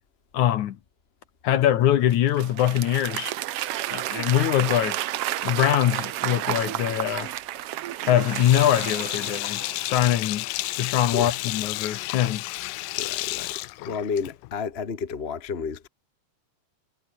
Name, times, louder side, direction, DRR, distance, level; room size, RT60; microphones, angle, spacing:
voice 1, 0.3-0.8 1.4-3.3 3.9-5.0 5.4-7.3 8.1-10.5 10.8-12.4, left 11 dB, 65° left, 2.5 m, -23 dB
Applause / Crowd, 2.1-9.9, right 14 dB, 85° right, 1.3 m, -31 dB
Sink (filling or washing), 8.1-14.5, left 19 dB, 85° left, 2.3 m, -32 dB
voice 2, 12.9-13.6 13.8-15.9, left 5 dB, 30° left, 1.2 m, -31 dB
omnidirectional pair, 3.9 m